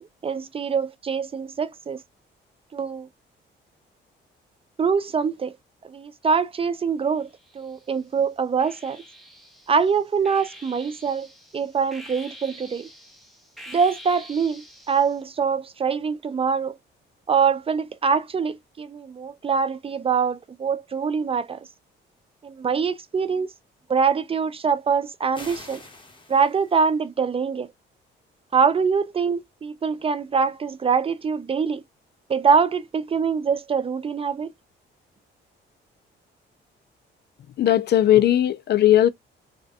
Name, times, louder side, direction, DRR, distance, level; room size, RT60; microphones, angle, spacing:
voice 1, 0.0-2.0 2.7-3.1 4.8-5.5 5.8-7.3 7.5-9.0 9.7-12.9 13.7-16.7 17.3-21.7 22.4-23.5 23.9-25.8 26.3-27.7 28.5-31.8 32.3-34.5, right 6 dB, 30° right, 0.4 m, -24 dB
sound 1, 7.2-8.0 8.6-15.2, equal, ahead, 0.9 m, -46 dB
sound 2, 25.3-26.9, left 2 dB, 25° left, 1.1 m, -44 dB
voice 2, 37.6-39.1, left 12 dB, 55° left, 0.4 m, -17 dB
3.3 x 2.1 x 2.6 m
cardioid pair, 90°, 20 cm